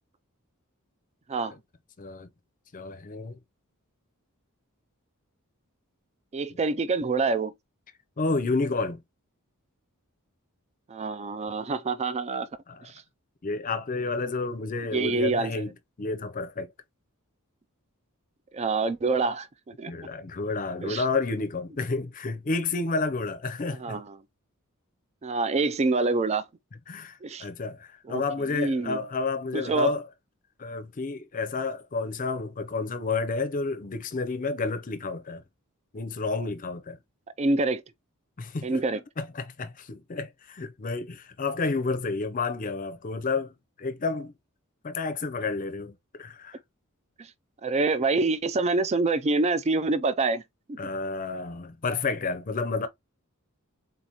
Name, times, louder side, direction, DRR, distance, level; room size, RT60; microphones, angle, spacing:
voice 1, 2.0-2.3 2.7-3.4 8.2-9.0 12.7-12.9 13.4-16.7 19.9-24.0 26.9-30.0 30.6-35.4 35.9-37.0 38.4-38.8 39.2-44.3 44.8-46.6 50.8-52.9, left 3 dB, 40° left, 0.6 m, -30 dB
voice 2, 6.3-7.5 10.9-12.5 12.8-12.9 14.9-15.6 18.5-20.1 20.8-21.0 23.8-24.2 25.2-26.5 27.2-27.5 28.1-29.0 29.5-29.9 37.4-37.8 38.6-39.0 47.6-50.4 50.7-50.8, right 3 dB, 30° right, 0.4 m, -26 dB
3.9 x 2.9 x 3.8 m
head